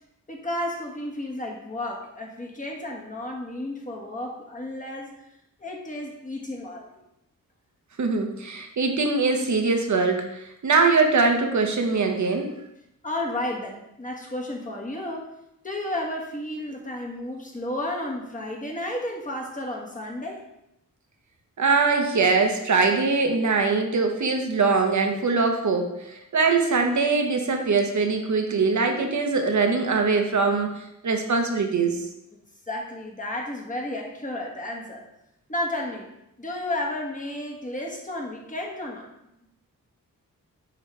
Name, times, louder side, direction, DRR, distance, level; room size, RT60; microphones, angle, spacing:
voice 1, 0.3-5.1 5.6-7.0 13.0-15.3 15.6-20.5 32.7-35.0 35.5-36.1 36.4-39.1, left 1 dB, 20° left, -1 dB, 1.4 m, -32 dB
voice 2, 8.0-12.5 21.6-32.1, right 4 dB, 55° right, 4 dB, 1.0 m, -22 dB
8.9 x 3.2 x 3.3 m, 0.84 s
cardioid pair, 65°, 35 cm